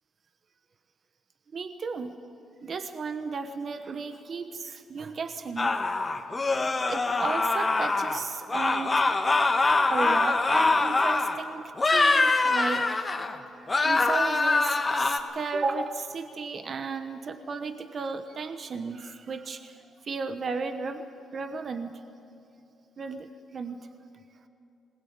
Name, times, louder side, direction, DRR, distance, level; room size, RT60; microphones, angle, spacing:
voice 1, 1.5-2.1 2.6-6.2 6.9-9.4 9.9-21.1 21.3-22.0 23.0-23.9, right 4 dB, 45° right, 9 dB, 1.1 m, -34 dB
sound 1, 5.6-8.2 8.5-11.4 11.8-13.4 13.7-15.2, left 3 dB, 25° left, 1.5 m, -24 dB
20.5 x 20.0 x 8.8 m, 2.8 s
cardioid pair, 90°, 0 cm